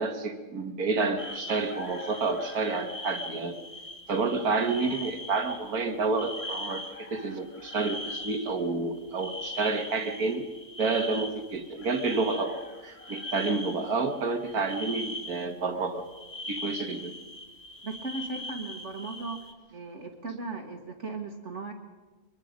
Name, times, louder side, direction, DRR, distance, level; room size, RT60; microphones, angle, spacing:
voice 1, 0.0-3.5 4.1-10.5 10.8-16.0 16.5-17.1, right 3 dB, 75° right, 7 dB, 2.1 m, -29 dB
Chicken rooster, 1.2-3.1 4.8-4.9 6.4-8.3 11.8-13.6, left 4 dB, 40° left, 2.2 m, -47 dB
sound 1, 1.2-8.7 8.9-15.5 16.1-19.5, left 1 dB, 25° left, 1.7 m, -41 dB
voice 2, 17.8-19.4 19.7-21.7, right 3 dB, 50° right, 4 dB, 1.9 m, -37 dB
23.0 x 22.0 x 5.2 m, 1.2 s
omnidirectional pair, 1.6 m